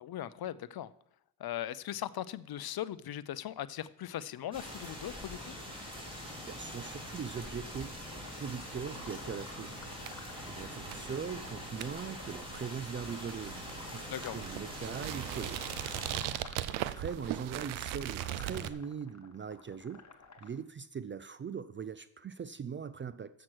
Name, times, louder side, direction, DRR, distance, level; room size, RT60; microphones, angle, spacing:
voice 1, 0.0-0.9 1.4-5.5 14.1-14.4, left 11 dB, 50° left, 0.6 m, -39 dB
sound 1, 4.5-16.1, equal, 10° right, 3.4 m, -44 dB
voice 2, 6.5-7.9 8.4-9.7 10.5-15.7 16.9-20.0 20.4-23.4, right 6 dB, 25° right, 0.4 m, -41 dB
sound 2, 8.0-20.5, left 5 dB, 35° left, 1.4 m, -53 dB
sound 3, 8.7-18.7, right 13 dB, 80° right, 0.6 m, -40 dB
7.4 x 6.0 x 6.3 m
supercardioid pair, 50°, 47 cm